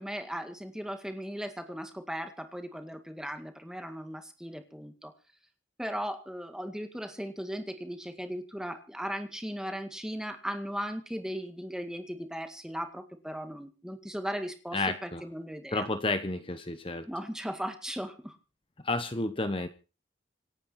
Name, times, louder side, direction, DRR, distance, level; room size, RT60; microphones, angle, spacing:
voice 1, 0.0-5.1 5.8-15.9 17.1-18.4, equal, 5° right, 6 dB, 1.9 m, -37 dB
voice 2, 14.7-15.2 15.7-17.0 18.8-19.7, left 2 dB, 30° left, 9 dB, 1.0 m, -31 dB
27.0 x 9.5 x 4.3 m, 0.36 s
head